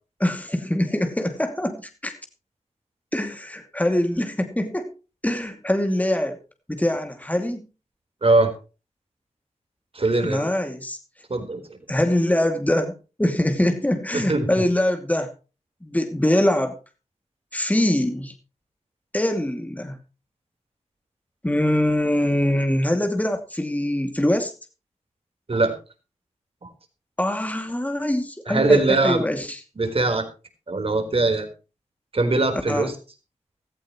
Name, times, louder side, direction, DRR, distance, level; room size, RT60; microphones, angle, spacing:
voice 1, 0.2-2.1 3.1-4.9 5.2-6.4 6.7-7.7 10.2-11.0 11.9-12.9 13.2-15.3 15.8-16.8 17.5-18.3 19.1-20.0 21.4-24.5 27.2-29.6 32.7-32.9, left 1 dB, 10° left, 6 dB, 2.6 m, -23 dB
voice 2, 8.2-8.5 9.9-10.4 11.3-11.6 14.1-14.6 25.5-25.7 28.5-29.2 29.8-30.3 30.7-31.5 32.1-32.9, right 2 dB, 50° right, 7 dB, 4.3 m, -21 dB
16.0 x 14.0 x 3.1 m, 0.32 s
cardioid pair, 55°, 13 cm